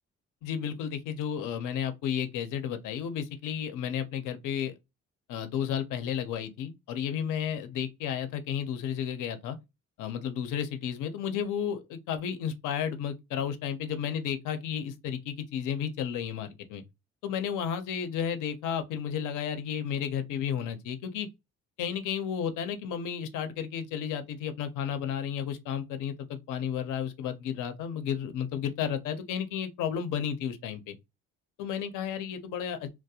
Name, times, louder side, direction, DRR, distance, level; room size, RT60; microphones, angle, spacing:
voice 1, 0.4-4.7 5.3-9.6 10.0-16.8 17.2-21.3 21.8-31.0 31.6-32.9, left 8 dB, 85° left, 0.5 m, -32 dB
2.3 x 2.0 x 2.7 m
cardioid pair, 90°, 30 cm